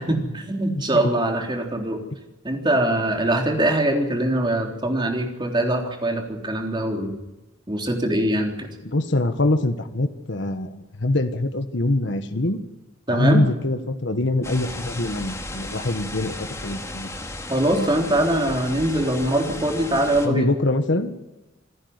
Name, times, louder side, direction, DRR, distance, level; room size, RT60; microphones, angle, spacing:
voice 1, 0.0-2.0 2.4-7.2 7.7-8.7 13.1-13.4 17.5-20.5, right 1 dB, 25° right, 2 dB, 3.6 m, -22 dB
voice 2, 0.7-1.1 8.8-12.6 13.1-17.1 20.2-21.2, left 2 dB, 65° left, 8 dB, 1.5 m, -24 dB
sound 1, 14.4-20.3, left 2 dB, 15° left, 2.2 m, -35 dB
27.0 x 11.0 x 9.7 m, 1.0 s
head